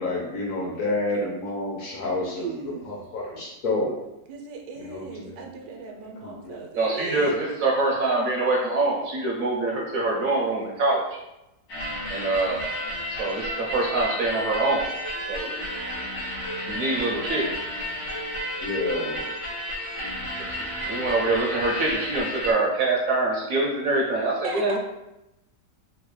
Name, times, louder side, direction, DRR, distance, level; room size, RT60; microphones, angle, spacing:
voice 1, 0.0-3.9 4.8-5.4 6.0-6.6 18.6-19.2, left 2 dB, 60° left, -3 dB, 0.9 m, -29 dB
voice 2, 2.4-2.9 4.3-7.5 24.4-24.8, right 4 dB, 85° right, 2 dB, 1.2 m, -37 dB
voice 3, 6.7-11.0 12.1-12.6 13.1-14.9 15.3-15.6 16.7-17.5 18.8-19.0 20.4-20.6 20.9-24.8, right 2 dB, 70° right, -2 dB, 0.8 m, -24 dB
sound 1, 11.7-22.5, equal, 90° left, 1.9 m, -32 dB
sound 2, 14.7-19.6, right 2 dB, 55° right, 0.4 m, -43 dB
3.9 x 2.1 x 3.1 m, 0.90 s
omnidirectional pair, 1.9 m